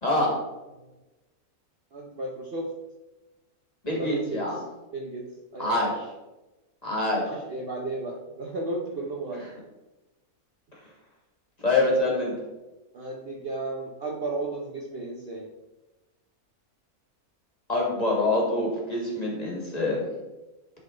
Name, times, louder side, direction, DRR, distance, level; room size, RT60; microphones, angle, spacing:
voice 1, 0.0-0.3 3.8-4.6 5.6-5.9 6.8-7.2 11.6-12.3 17.7-20.1, left 2 dB, 25° left, -3 dB, 1.8 m, -25 dB
voice 2, 1.9-2.7 3.9-4.4 4.9-5.9 7.3-9.4 12.9-15.5, right 2 dB, 50° right, -1 dB, 0.8 m, -34 dB
10.5 x 3.8 x 3.8 m, 1.1 s
omnidirectional pair, 1.6 m